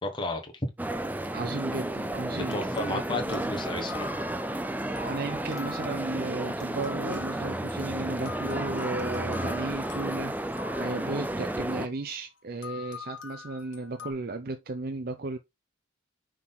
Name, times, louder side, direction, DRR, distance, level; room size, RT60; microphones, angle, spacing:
voice 1, 0.0-0.7 2.3-4.1, left 2 dB, 25° left, 1.3 m, -33 dB
sound 1, 0.8-11.9, right 1 dB, 10° right, 0.4 m, -32 dB
voice 2, 1.3-3.5 5.0-15.4, right 3 dB, 45° right, 0.6 m, -35 dB
sound 2, 2.3-12.0 12.6-14.1, left 5 dB, 60° left, 1.5 m, -45 dB
6.1 x 3.8 x 4.0 m
head